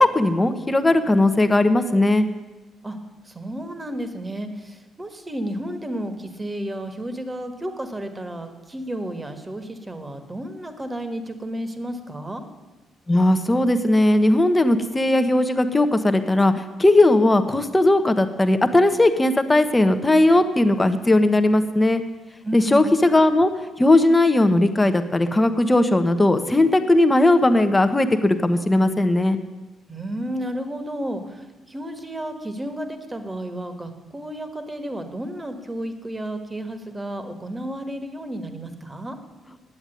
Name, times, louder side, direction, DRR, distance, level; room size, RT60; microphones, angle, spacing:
voice 1, 0.0-2.3 13.1-22.0 22.5-23.5 23.8-29.4, left 2 dB, 15° left, 9 dB, 1.0 m, -18 dB
voice 2, 3.2-12.4 22.4-22.9 29.9-39.2, right 1 dB, 20° right, 8 dB, 1.6 m, -32 dB
10.0 x 8.0 x 9.1 m, 1.2 s
cardioid pair, 90°, 0 cm